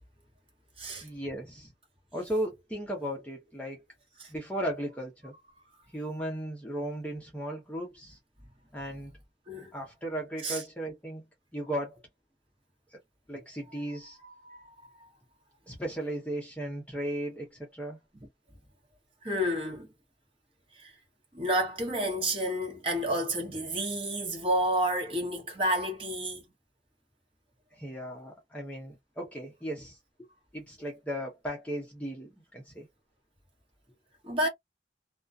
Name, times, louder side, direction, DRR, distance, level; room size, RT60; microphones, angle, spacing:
voice 1, 1.0-1.7 2.1-3.8 4.3-5.3 5.9-8.2 8.7-9.1 9.7-11.2 11.5-12.0 13.3-14.2 15.7-18.0 27.8-30.0 30.5-32.9, right 1 dB, 10° left, 0.6 m, -36 dB
voice 2, 14.2-14.7 15.0-15.1 18.1-18.3 19.2-19.9 20.7-20.9 21.3-26.4 34.2-34.5, right 1 dB, 30° right, 1.1 m, -30 dB
2.3 x 2.2 x 2.5 m
head